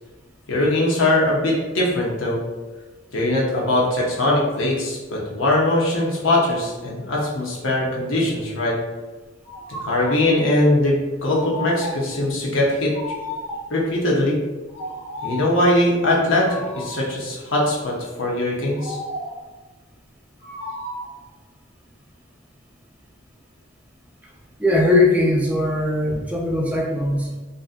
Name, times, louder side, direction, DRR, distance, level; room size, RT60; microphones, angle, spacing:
voice 1, 0.5-2.4 3.1-8.8 9.8-12.9 13.7-14.4 15.2-19.0, left 1 dB, 85° left, -3 dB, 0.7 m, -21 dB
sound 1, 9.4-10.3 11.2-12.2 12.9-13.8 14.7-15.5 16.4-17.1 18.7-19.5 20.4-21.2, left 1 dB, 60° left, 0.9 m, -33 dB
voice 2, 24.6-27.4, left 2 dB, 5° right, -2 dB, 0.3 m, -20 dB
2.5 x 2.5 x 2.4 m, 1.2 s
head